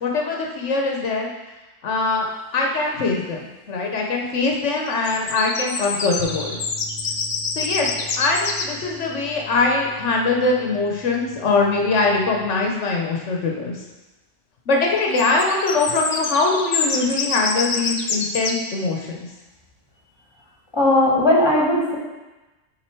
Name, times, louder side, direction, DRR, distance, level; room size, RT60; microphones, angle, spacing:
voice 1, 0.0-1.3 1.8-2.3 2.5-6.6 7.5-13.8 14.7-19.3, left 3 dB, 75° left, 0 dB, 1.2 m, -22 dB
sound 1, 4.8-8.7 14.8-18.6, left 4 dB, 50° left, 0.6 m, -26 dB
sound 2, 6.2-12.5, left 1 dB, 80° right, 1.4 m, -42 dB
voice 2, 20.7-22.0, left 1 dB, 20° left, -3 dB, 1.7 m, -17 dB
7.5 x 4.6 x 4.5 m, 1.1 s
omnidirectional pair, 1.2 m